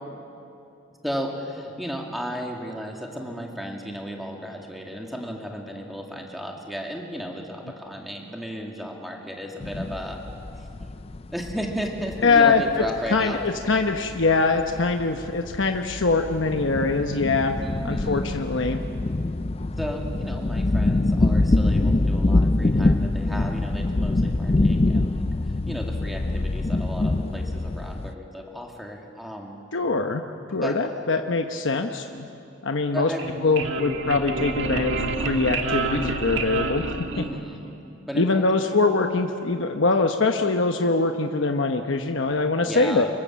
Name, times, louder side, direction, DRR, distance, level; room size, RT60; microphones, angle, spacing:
voice 1, 1.0-10.2 10.6-10.7 11.3-13.4 17.6-18.3 19.8-29.6 30.5-31.0 32.9-33.3 37.1-37.6 38.1-38.7 42.6-43.1, equal, ahead, 0 dB, 2.2 m, -34 dB
sound 1, 9.6-28.1, left 2 dB, 30° left, 0.4 m, -25 dB
voice 2, 12.2-12.6 13.1-17.6 17.8-18.8 29.7-30.2 30.5-32.3 32.6-33.1 33.4-37.1 38.1-43.1, left 3 dB, 75° left, 5 dB, 1.0 m, -23 dB
sound 2, 33.0-37.7, right 3 dB, 75° right, 1.6 m, -28 dB
25.5 x 22.5 x 7.5 m, 2.8 s
head